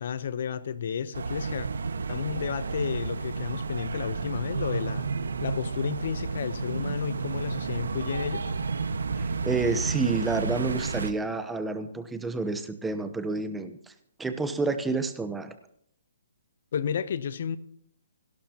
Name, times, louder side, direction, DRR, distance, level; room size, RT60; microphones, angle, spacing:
voice 1, 0.0-1.7 2.1-5.1 5.4-8.4 16.7-17.6, left 7 dB, 55° left, 16 dB, 0.8 m, -32 dB
sound 1, 1.1-11.1, right 4 dB, 85° right, 1.4 m, -31 dB
voice 2, 9.2-13.9 14.2-15.5, right 3 dB, 5° right, 9 dB, 0.8 m, -29 dB
29.0 x 12.0 x 2.9 m, 0.69 s
hypercardioid pair, 160°, 0 cm